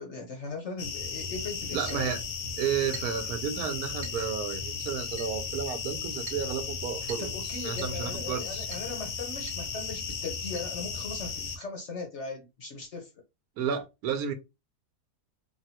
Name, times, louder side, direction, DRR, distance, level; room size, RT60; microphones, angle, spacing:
voice 1, 0.0-2.1 7.2-13.1, left 3 dB, 60° left, 0.8 m, -39 dB
sound 1, 0.8-11.6, left 5 dB, 90° left, 1.3 m, -35 dB
voice 2, 1.7-2.2 2.6-7.3 7.6-8.7 13.6-14.3, right 8 dB, 75° right, 1.1 m, -32 dB
Chink clink, 1.9-2.1 2.9-3.3 4.0-4.3 5.2-5.4 6.3-6.5 7.1-7.4 7.8-8.0 8.7-8.9 9.5-9.7 9.9-10.0 10.6-10.7 11.6-11.7, right 7 dB, 40° right, 0.9 m, -44 dB
3.3 x 2.2 x 2.8 m
omnidirectional pair, 1.7 m